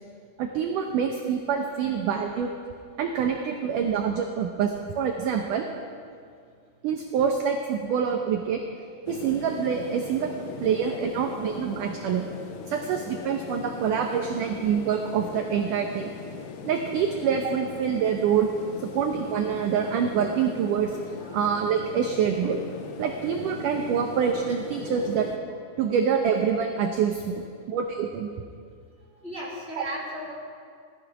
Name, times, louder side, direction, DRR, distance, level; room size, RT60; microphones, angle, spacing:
voice 1, 0.4-2.5 3.0-5.7 6.8-8.6 9.1-10.3 10.6-12.2 12.7-16.1 16.6-18.5 18.9-20.9 21.3-22.6 23.0-25.3 25.8-28.3 29.8-29.9, right 7 dB, 75° right, 3 dB, 1.9 m, -26 dB
sound 1, 9.1-25.4, left 6 dB, 70° left, 2.4 m, -39 dB
voice 2, 29.2-30.3, equal, 20° left, -6 dB, 2.2 m, -36 dB
17.5 x 13.0 x 5.9 m, 2.2 s
omnidirectional pair, 4.8 m